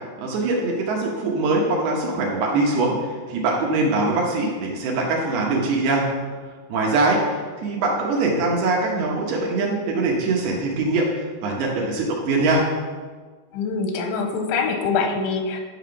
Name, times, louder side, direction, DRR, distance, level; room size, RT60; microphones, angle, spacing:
voice 1, 0.2-6.0 6.7-12.7, right 2 dB, 70° right, -2 dB, 2.8 m, -22 dB
voice 2, 13.5-15.6, left 4 dB, 85° left, 4 dB, 3.2 m, -24 dB
11.0 x 5.8 x 5.7 m, 1.5 s
omnidirectional pair, 5.4 m